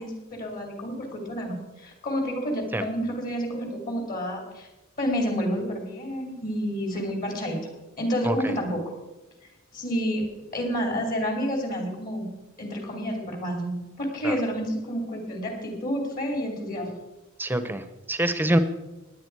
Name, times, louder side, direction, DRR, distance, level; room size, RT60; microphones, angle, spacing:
voice 1, 0.0-4.7 5.0-7.6 8.0-8.9 9.4-10.3 10.5-12.3 12.6-16.9, equal, 45° left, 3 dB, 3.0 m, -29 dB
voice 2, 8.2-8.6 14.2-14.3 17.4-18.6, right 1 dB, 10° right, 11 dB, 0.9 m, -25 dB
17.5 x 10.5 x 4.7 m, 1.1 s
head